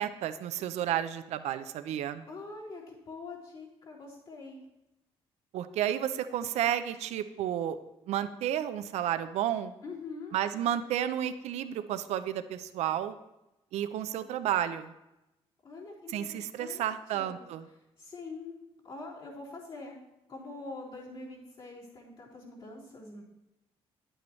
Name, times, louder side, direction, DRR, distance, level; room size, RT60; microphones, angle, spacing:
voice 1, 0.0-2.2 5.5-7.8 8.1-9.7 10.3-13.2 13.7-14.9 16.1-17.6, right 11 dB, 80° right, 11 dB, 0.6 m, -31 dB
voice 2, 2.3-4.6 9.8-10.4 15.6-16.8 17.1-17.4 17.7-18.6 18.8-20.0 20.3-23.2, left 3 dB, 55° left, -7 dB, 4.0 m, -44 dB
10.0 x 8.8 x 3.2 m, 0.91 s
cardioid pair, 85°, 11 cm